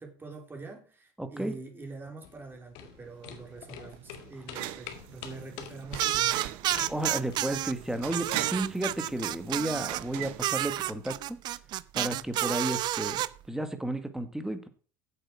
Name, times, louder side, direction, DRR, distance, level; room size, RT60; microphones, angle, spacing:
voice 1, 0.0-6.4 6.7-6.9 12.1-12.4, right 3 dB, 25° right, 2 dB, 3.6 m, -45 dB
voice 2, 1.2-1.6 6.9-11.4 11.9-14.7, right 1 dB, 5° right, 9 dB, 1.8 m, -33 dB
sound 1, 2.2-7.6, left 9 dB, 70° left, 1.9 m, -45 dB
sound 2, 3.0-11.3, right 14 dB, 70° right, 1.1 m, -41 dB
sound 3, 6.0-7.7 8.1-10.0 10.4-13.3, right 14 dB, 55° right, 0.6 m, -30 dB
8.2 x 8.1 x 6.1 m, 0.40 s
supercardioid pair, 95°, 9 cm